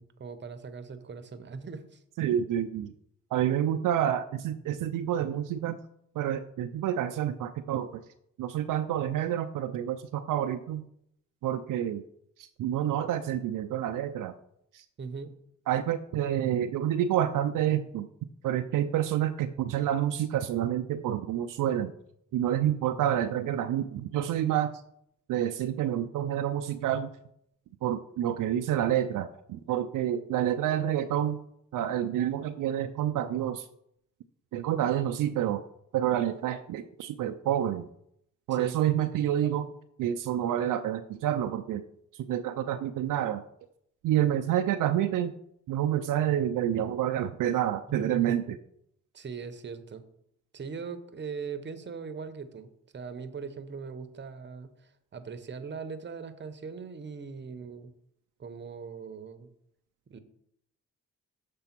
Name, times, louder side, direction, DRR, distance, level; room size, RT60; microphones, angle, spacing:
voice 1, 0.0-2.0 15.0-15.3 38.5-38.8 47.9-48.4 49.1-50.1 50.5-57.9 58.4-59.5 60.1-60.2, right 5 dB, 35° right, 10 dB, 0.8 m, -40 dB
voice 2, 2.2-2.9 3.3-5.8 6.2-8.0 8.4-10.8 11.4-12.0 12.4-14.3 14.7-14.8 15.7-18.1 18.4-21.9 22.3-24.7 25.3-27.1 27.8-31.4 31.7-33.7 34.5-35.6 35.9-37.9 38.5-39.7 40.0-41.8 42.3-43.4 44.0-45.3 45.7-48.4, right 11 dB, 75° right, 7 dB, 0.5 m, -28 dB
6.8 x 3.4 x 5.9 m, 0.73 s
cardioid pair, 75°, 32 cm